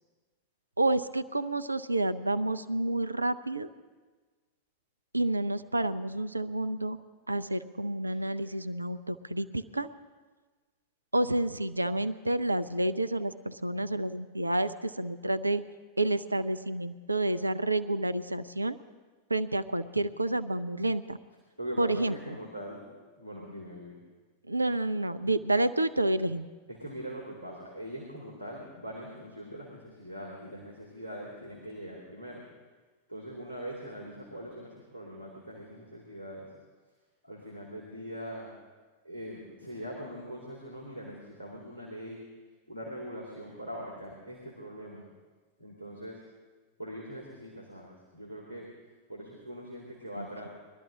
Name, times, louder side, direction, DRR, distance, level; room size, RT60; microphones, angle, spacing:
voice 1, 0.8-3.7 5.1-7.0 7.3-9.9 11.1-15.6 16.0-18.8 19.3-21.2 21.8-22.1 24.5-26.5 50.2-50.5, right 1 dB, 85° right, 13 dB, 0.5 m, -29 dB
voice 2, 21.6-24.0 26.7-32.4 33.1-36.5 37.2-38.5 39.0-42.2 42.7-45.0 45.6-46.2 46.8-48.7 49.1-50.5, equal, 80° left, -4 dB, 2.9 m, -42 dB
22.0 x 12.5 x 3.8 m, 1.4 s
figure-of-eight pair, 90°, 0 cm